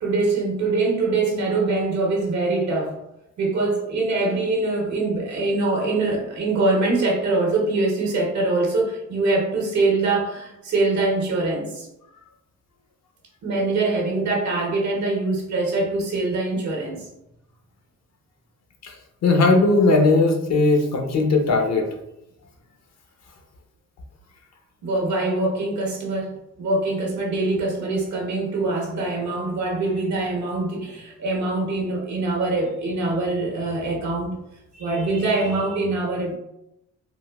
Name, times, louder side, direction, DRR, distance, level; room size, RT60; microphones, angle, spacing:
voice 1, 0.0-3.0 3.4-11.9 13.4-17.1 24.8-34.4 34.7-36.4, right 2 dB, 70° right, -1 dB, 1.1 m, -23 dB
voice 2, 19.2-21.8, left 3 dB, 60° left, 2 dB, 0.8 m, -18 dB
3.8 x 2.4 x 2.4 m, 0.84 s
cardioid pair, 90°, 30 cm